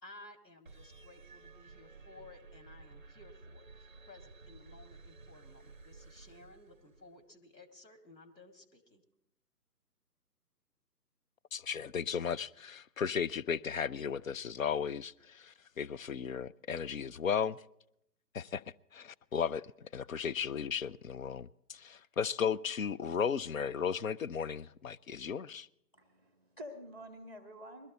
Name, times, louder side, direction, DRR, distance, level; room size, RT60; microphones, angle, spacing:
voice 1, 0.0-9.0, left 2 dB, 85° left, 2.3 m, -56 dB
sound 1, 0.7-7.2, right 3 dB, 30° right, 0.6 m, -54 dB
voice 2, 11.5-17.6 18.3-18.6 18.9-25.7, left 7 dB, 55° left, 0.5 m, -35 dB
voice 3, 25.9-27.9, equal, 5° left, 0.8 m, -48 dB
21.0 x 13.0 x 4.1 m
figure-of-eight pair, 145°, 50 cm